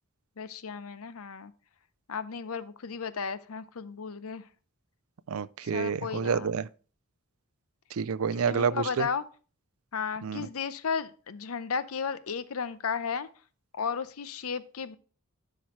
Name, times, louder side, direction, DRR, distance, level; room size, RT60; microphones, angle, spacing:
voice 1, 0.4-1.5 2.1-4.5 5.7-6.5 8.5-9.2 9.9-13.3 13.7-15.0, left 6 dB, 75° left, 0.7 m, -34 dB
voice 2, 5.3-6.7 7.9-9.1 10.2-10.5, right 6 dB, 75° right, 0.4 m, -29 dB
11.5 x 6.0 x 3.1 m
head